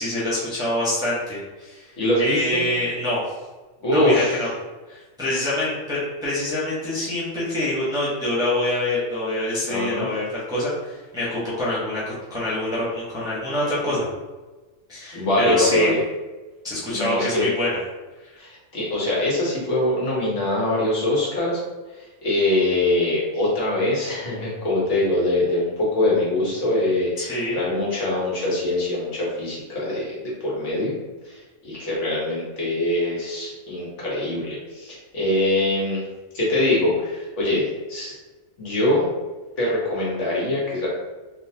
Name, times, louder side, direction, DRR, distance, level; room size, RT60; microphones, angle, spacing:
voice 1, 0.0-1.8 2.2-3.2 3.9-4.5 4.9-14.1 14.9-15.9 16.6-17.8 27.2-27.6, left 1 dB, 5° right, -9 dB, 0.8 m, -25 dB
voice 2, 2.0-2.6 3.8-4.4 9.7-10.1 15.1-16.0 16.9-17.4 18.4-21.6 21.9-30.9 31.2-36.0 36.3-38.2 38.6-39.1 39.6-40.9, left 1 dB, 65° left, -6 dB, 1.4 m, -23 dB
3.8 x 2.5 x 2.8 m, 1.2 s
omnidirectional pair, 1.3 m